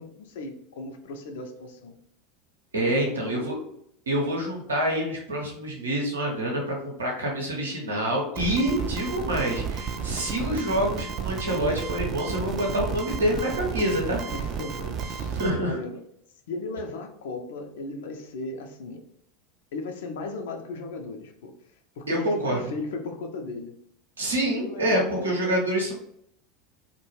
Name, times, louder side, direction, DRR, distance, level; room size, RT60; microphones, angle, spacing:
voice 1, 0.0-2.0 2.9-3.5 14.3-16.0 16.5-19.1 19.7-21.5 22.0-23.7 24.5-25.6, left 3 dB, 70° left, 5 dB, 0.4 m, -36 dB
voice 2, 2.7-3.6 4.1-14.2 15.3-15.8 22.1-22.6 24.2-25.9, right 1 dB, 85° right, -1 dB, 0.7 m, -26 dB
sound 1, 8.4-15.5, right 6 dB, 40° right, 0.3 m, -32 dB
2.3 x 2.1 x 3.1 m, 0.71 s
hypercardioid pair, 85°, 0 cm